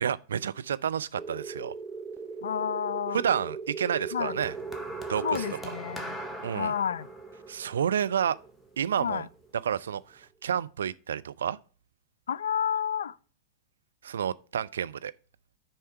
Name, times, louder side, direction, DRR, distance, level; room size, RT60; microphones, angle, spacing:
voice 1, 0.0-1.7 3.1-4.5 5.1-5.4 6.4-6.7 7.5-8.4 8.8-9.3 9.6-11.6 14.0-15.1, right 8 dB, 65° right, 0.3 m, -30 dB
sound 1, 1.2-9.5, right 5 dB, 15° right, 0.6 m, -40 dB
voice 2, 2.4-3.2 4.1-4.3 5.2-6.2 6.5-7.1 9.0-9.3 12.3-13.2, left 8 dB, 65° left, 0.3 m, -30 dB
sound 2, 4.4-8.9 9.8-10.0, left 1 dB, 5° left, 1.2 m, -42 dB
6.7 x 4.4 x 6.7 m
figure-of-eight pair, 90°, 0 cm